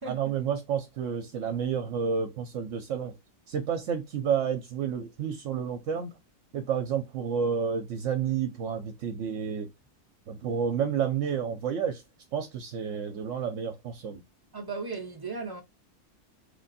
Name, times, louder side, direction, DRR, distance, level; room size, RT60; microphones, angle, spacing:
voice 1, 0.0-3.1 3.5-6.1 6.5-9.7 10.3-12.0 12.3-14.2, right 7 dB, 70° right, 0.9 m, -30 dB
voice 2, 14.5-15.6, right 4 dB, 35° right, 0.3 m, -36 dB
3.3 x 2.5 x 3.9 m
omnidirectional pair, 1.4 m